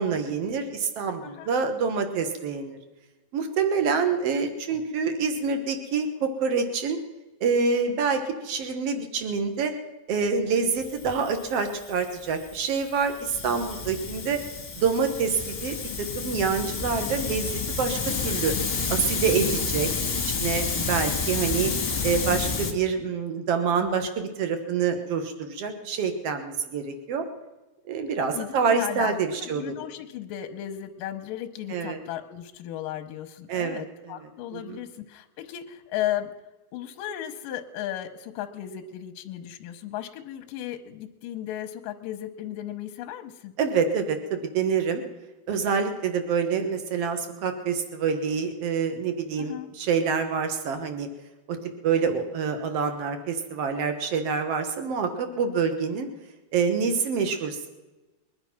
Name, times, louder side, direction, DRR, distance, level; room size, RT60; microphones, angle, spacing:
voice 1, 0.0-2.8 3.3-7.0 7.4-9.7 10.1-14.4 14.8-18.0 18.2-19.9 20.2-21.7 22.0-27.2 27.9-29.7 31.7-32.0 33.5-34.8 43.6-45.0 45.5-51.1 51.5-51.6 51.8-56.1 56.5-57.7, right 5 dB, 70° right, 7 dB, 1.4 m, -26 dB
Hiss, 10.8-22.7, left 5 dB, 35° left, 1.2 m, -30 dB
voice 2, 19.3-19.7 23.8-24.0 28.3-36.3 36.7-43.5 49.4-49.7, left 12 dB, 75° left, 6 dB, 2.1 m, -35 dB
22.0 x 10.5 x 5.9 m, 1.1 s
omnidirectional pair, 4.9 m